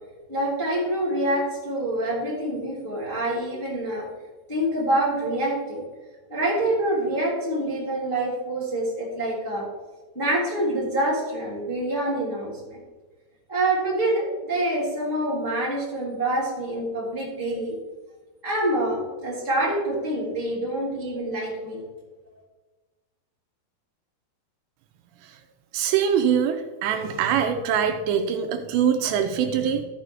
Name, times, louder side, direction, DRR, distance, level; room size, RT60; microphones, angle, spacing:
voice 1, 0.3-4.1 4.5-5.8 6.3-9.8 10.1-12.8 13.5-17.8 18.4-21.8, right 1 dB, 5° left, -7 dB, 1.9 m, -26 dB
voice 2, 25.7-29.8, right 8 dB, 80° right, 6 dB, 2.8 m, -23 dB
14.0 x 6.1 x 3.4 m, 1.3 s
omnidirectional pair, 5.3 m